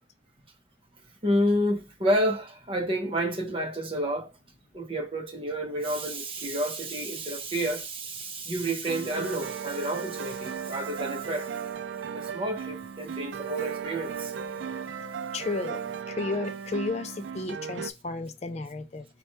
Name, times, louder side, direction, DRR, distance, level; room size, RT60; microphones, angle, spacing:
voice 1, 1.2-4.3 4.7-11.8 12.1-14.3, equal, 30° right, 0.7 m, -30 dB
sound 1, 8.8-17.9, right 7 dB, 90° right, 0.4 m, -36 dB
voice 2, 15.3-15.8 16.1-19.1, left 3 dB, 35° left, 0.4 m, -33 dB
4.1 x 2.2 x 4.4 m
head